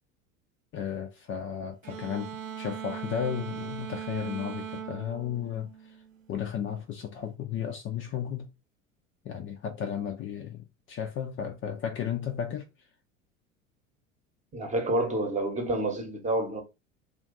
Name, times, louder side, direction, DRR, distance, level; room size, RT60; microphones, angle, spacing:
voice 1, 0.7-6.0 6.3-8.5 9.2-12.9, left 8 dB, 30° left, 0.5 m, -34 dB
sound 1, 1.8-6.3, right 8 dB, 85° right, 0.7 m, -39 dB
voice 2, 14.5-16.6, right 1 dB, 20° right, 1.0 m, -28 dB
2.5 x 2.4 x 3.7 m
figure-of-eight pair, 75°, 39 cm